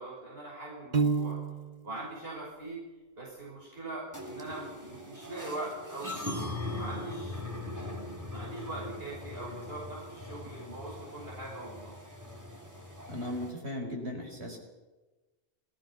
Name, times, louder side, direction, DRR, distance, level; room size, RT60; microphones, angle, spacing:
voice 1, 0.0-1.4 1.8-2.8 3.2-6.2 6.7-7.4 8.3-11.9, right 2 dB, 65° right, -4 dB, 6.5 m, -41 dB
Piano, 0.9-1.9, right 5 dB, 45° right, 0.9 m, -29 dB
sound 1, 4.1-13.5, left 1 dB, 15° right, 2.9 m, -40 dB
voice 2, 13.1-14.6, left 1 dB, 90° right, 1 dB, 5.4 m, -37 dB
27.0 x 18.0 x 6.1 m, 1.2 s
omnidirectional pair, 1.1 m